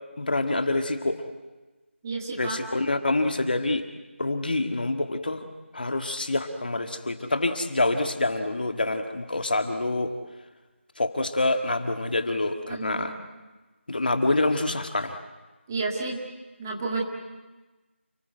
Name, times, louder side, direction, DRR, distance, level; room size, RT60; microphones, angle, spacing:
voice 1, 0.2-1.2 2.4-3.8 4.2-5.4 5.7-10.1 11.0-13.1 13.9-15.1, left 2 dB, 45° left, 6 dB, 1.7 m, -26 dB
voice 2, 2.0-2.6 12.7-13.2 15.7-16.2 16.6-17.0, right 3 dB, 15° right, -1 dB, 1.9 m, -31 dB
29.5 x 19.5 x 8.0 m, 1.2 s
figure-of-eight pair, 170°, 7 cm